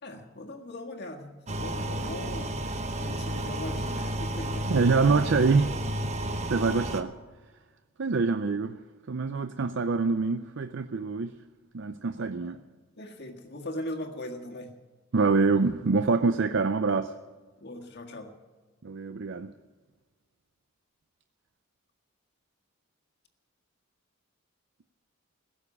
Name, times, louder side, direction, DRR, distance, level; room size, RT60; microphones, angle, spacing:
voice 1, 0.0-2.6 2.9-4.8 12.4-12.6 13.0-14.7 17.6-18.3, left 1 dB, 50° left, 3 dB, 1.7 m, -39 dB
sound 1, 1.5-7.0, right 1 dB, 30° right, 0.8 m, -32 dB
voice 2, 4.7-5.8 6.5-7.1 8.0-8.8 9.1-11.3 11.7-12.6 15.1-17.1 18.8-19.5, right 4 dB, 55° right, 10 dB, 0.5 m, -25 dB
16.5 x 7.1 x 9.8 m, 1.3 s
head